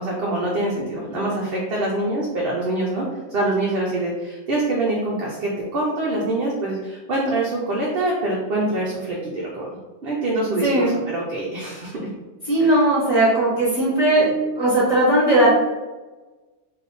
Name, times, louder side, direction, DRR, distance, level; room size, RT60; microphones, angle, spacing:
voice 1, 0.0-9.7 10.0-12.1 12.6-12.8, right 2 dB, 55° right, -5 dB, 0.8 m, -25 dB
voice 2, 10.6-11.0 12.5-14.3 14.6-15.5, right 1 dB, 35° right, -10 dB, 1.2 m, -18 dB
3.5 x 2.7 x 4.0 m, 1.2 s
omnidirectional pair, 1.3 m